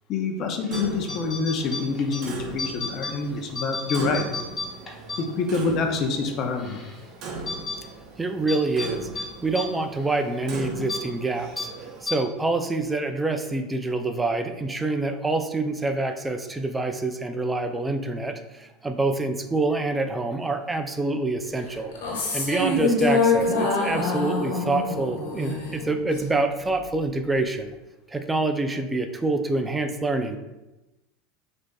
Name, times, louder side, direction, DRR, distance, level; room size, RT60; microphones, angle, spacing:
voice 1, 0.1-4.2 5.2-6.8, left 4 dB, 45° left, 4 dB, 0.6 m, -26 dB
sound 1, 0.6-0.8 1.1-2.2 2.6-3.1 3.5-5.7 6.0-6.1 6.6-7.0 7.5-7.8 8.5-8.9 9.2-9.3 9.6-9.7 10.0-10.2 10.8-11.0 11.6-11.7 12.1-12.2, left 3 dB, 25° left, 0.9 m, -32 dB
Clock, 0.7-12.0, right 3 dB, 50° right, 0.7 m, -39 dB
voice 2, 8.2-11.7 12.0-21.9 22.3-27.7 28.1-30.4, right 2 dB, 10° right, 7 dB, 0.4 m, -26 dB
sound 2, 21.9-26.4, left 3 dB, 85° left, 1.3 m, -25 dB
6.1 x 2.6 x 2.3 m, 1.0 s
supercardioid pair, 110°, 0 cm